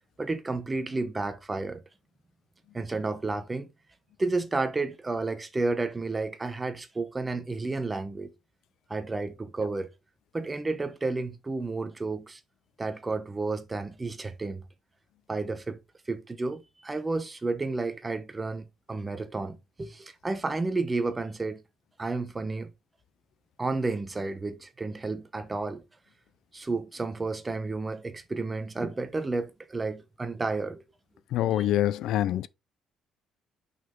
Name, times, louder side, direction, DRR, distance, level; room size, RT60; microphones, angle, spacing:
voice 1, 0.2-1.8 2.7-3.7 4.2-8.3 8.9-9.9 10.3-12.4 12.8-14.6 15.3-15.8 16.1-21.6 22.0-22.7 23.6-25.8 26.5-30.8 31.6-31.7 32.3-32.4, right 3 dB, 15° right, 0.9 m, -31 dB
voice 2, 31.3-32.5, left 12 dB, 65° left, 0.4 m, -25 dB
6.0 x 5.7 x 3.6 m
cardioid pair, 155°, 0 cm